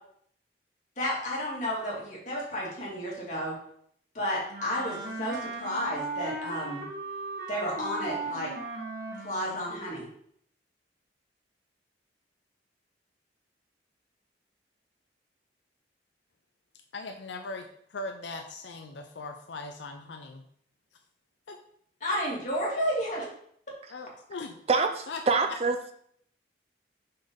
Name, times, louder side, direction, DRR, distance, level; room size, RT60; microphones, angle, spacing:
voice 1, 1.0-3.6 4.1-6.8 7.5-8.5 9.2-10.1 22.0-23.3, equal, 40° left, -4 dB, 2.1 m, -32 dB
Wind instrument woodwind instrument, 4.5-9.7, right 3 dB, 55° right, 1.3 m, -37 dB
voice 2, 16.9-20.4 21.5-21.6 23.9-24.6 25.1-25.2, left 3 dB, 70° left, 5 dB, 0.5 m, -39 dB
voice 3, 24.7-25.9, right 4 dB, 35° right, 7 dB, 0.4 m, -26 dB
5.6 x 5.3 x 3.7 m, 0.66 s
head